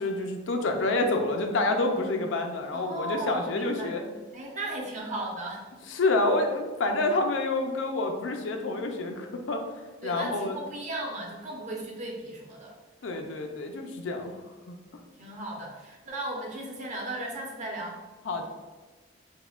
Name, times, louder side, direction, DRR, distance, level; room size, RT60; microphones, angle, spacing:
voice 1, 0.0-4.0 5.9-9.6 10.0-10.6 13.0-14.4 14.7-14.8 18.3-18.5, left 2 dB, 75° left, 4 dB, 0.5 m, -28 dB
voice 2, 2.7-3.9 4.3-5.7 10.0-12.7 15.2-18.0, right 1 dB, 40° right, -2 dB, 0.8 m, -36 dB
5.4 x 2.2 x 2.4 m, 1.3 s
head